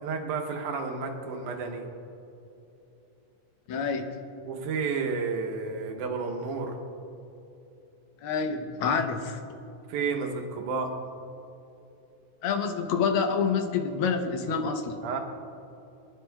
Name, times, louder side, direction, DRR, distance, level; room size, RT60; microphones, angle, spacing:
voice 1, 0.0-1.9 4.4-6.8 9.9-11.0 15.0-15.2, right 4 dB, 75° right, 2 dB, 2.4 m, -31 dB
voice 2, 3.7-4.1 8.2-9.4 12.4-15.0, left 5 dB, 75° left, 4 dB, 1.2 m, -27 dB
22.5 x 11.0 x 2.3 m, 2.8 s
omnidirectional pair, 3.6 m